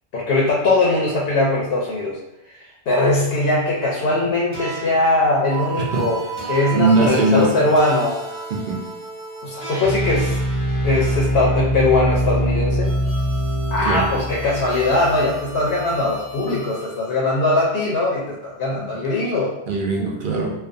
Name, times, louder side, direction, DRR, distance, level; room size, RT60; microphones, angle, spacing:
voice 1, 0.1-2.2 2.5-8.2 9.4-10.4 10.8-12.9 13.7-19.5, left 2 dB, 70° left, -4 dB, 0.8 m, -20 dB
sound 1, 4.5-17.0, right 1 dB, 15° left, 0.8 m, -26 dB
voice 2, 6.7-7.5 8.5-8.8 13.8-14.0 19.7-20.5, right 3 dB, 60° right, 0 dB, 0.7 m, -20 dB
2.4 x 2.2 x 2.5 m, 0.87 s
omnidirectional pair, 1.1 m